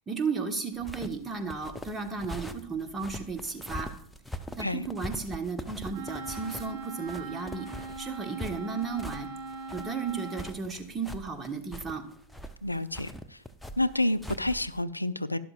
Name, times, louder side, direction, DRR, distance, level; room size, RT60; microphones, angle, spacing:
voice 1, 0.1-3.9 4.6-7.7 8.0-9.3 9.7-12.0, right 5 dB, 15° right, 1.2 m, -34 dB
sound 1, 0.7-14.8, equal, ahead, 0.6 m, -42 dB
Wind instrument woodwind instrument, 5.9-10.5, right 3 dB, 40° right, 4.1 m, -40 dB
voice 2, 12.6-13.4 13.8-15.4, left 1 dB, 85° left, 0.3 m, -29 dB
12.0 x 11.5 x 2.4 m
figure-of-eight pair, 90°, 0 cm